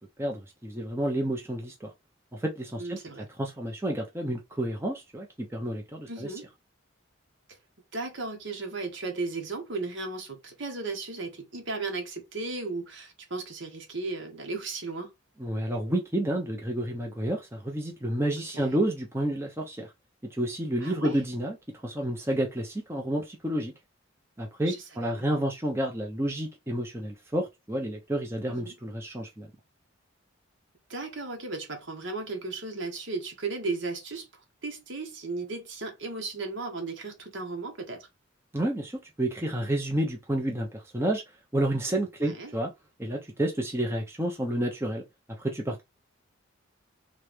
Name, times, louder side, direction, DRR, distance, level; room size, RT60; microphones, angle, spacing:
voice 1, 0.2-1.9 2.3-3.0 3.4-6.3 15.4-19.9 20.3-23.7 24.4-29.5 38.5-41.2 41.5-42.7 43.0-45.0 45.4-45.8, right 1 dB, 10° right, 0.7 m, -30 dB
voice 2, 2.8-3.3 6.1-6.4 7.9-15.1 18.5-18.8 20.8-21.1 24.7-24.8 28.5-28.8 30.9-38.1 42.2-42.5, right 3 dB, 60° right, 1.3 m, -35 dB
3.2 x 3.2 x 3.3 m
head